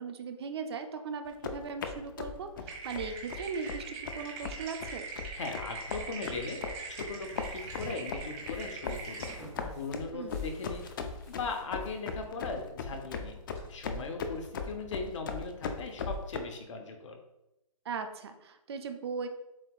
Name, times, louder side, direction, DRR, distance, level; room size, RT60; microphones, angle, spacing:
voice 1, 0.0-5.1 10.1-10.3 17.8-19.3, right 5 dB, 45° right, 7 dB, 0.5 m, -38 dB
sound 1, 1.3-16.4, left 5 dB, 35° left, 0.4 m, -38 dB
sound 2, 2.7-9.4, right 4 dB, 25° right, 1.3 m, -42 dB
voice 2, 5.4-6.6 6.9-9.3 9.7-10.9 11.3-13.4 13.7-17.2, left 4 dB, 55° left, 4 dB, 0.9 m, -39 dB
sound 3, 6.5-13.6, equal, 10° left, 1.4 m, -52 dB
7.5 x 2.9 x 2.4 m, 0.91 s
hypercardioid pair, 150°, 18 cm